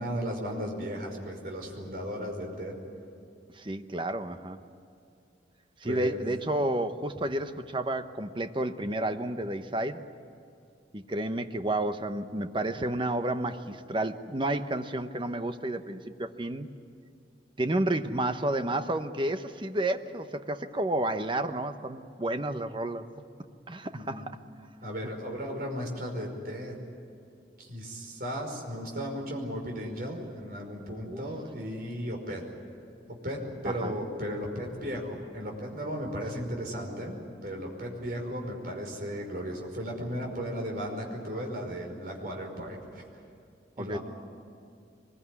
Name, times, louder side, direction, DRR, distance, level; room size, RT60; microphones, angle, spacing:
voice 1, 0.0-2.8 5.9-6.2 23.9-24.3 24.8-26.8 27.6-32.4 33.1-43.0 43.8-44.0, equal, 55° right, 1 dB, 5.2 m, -35 dB
voice 2, 3.5-4.6 5.8-10.1 10.9-16.7 17.6-23.0 23.7-24.4 31.0-31.2 32.3-32.4 33.6-33.9 43.8-44.0, right 1 dB, 30° right, 8 dB, 1.0 m, -31 dB
23.5 x 22.0 x 9.7 m, 2.5 s
head